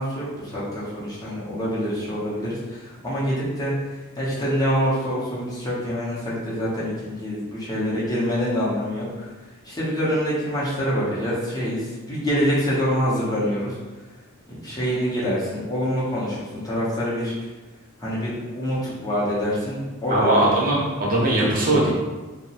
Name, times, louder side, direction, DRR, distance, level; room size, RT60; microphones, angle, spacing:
voice 1, 0.0-3.7 4.2-9.3 9.6-13.8 14.5-17.5 18.0-20.4, equal, 15° left, -8 dB, 0.6 m, -26 dB
voice 2, 20.1-21.9, right 1 dB, 40° right, -5 dB, 0.7 m, -20 dB
2.8 x 2.0 x 2.7 m, 1.2 s
head